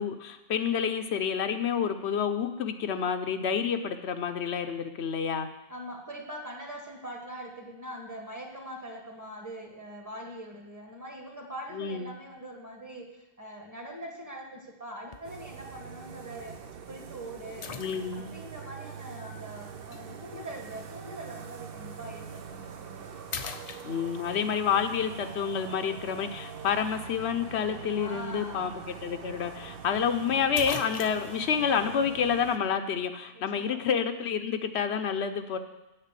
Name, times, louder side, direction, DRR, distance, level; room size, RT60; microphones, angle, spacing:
voice 1, 0.0-5.5 11.7-12.1 17.8-18.3 23.8-35.6, left 7 dB, 80° left, 7 dB, 1.0 m, -29 dB
voice 2, 5.7-16.6 16.9-17.8 18.1-23.0 28.0-28.8 33.3-33.8, right 1 dB, 15° right, 1 dB, 1.4 m, -42 dB
sound 1, 15.1-15.4 16.1-16.2 17.6-18.4 19.9-20.0 22.2-22.4 22.8-23.0 23.3-24.4 28.5-28.6 28.9-29.0 30.1-30.2 30.6-31.4, left 6 dB, 50° left, 0.5 m, -39 dB
sound 2, 15.2-32.6, right 6 dB, 60° right, 0.9 m, -44 dB
8.2 x 6.7 x 7.4 m, 0.98 s
omnidirectional pair, 1.1 m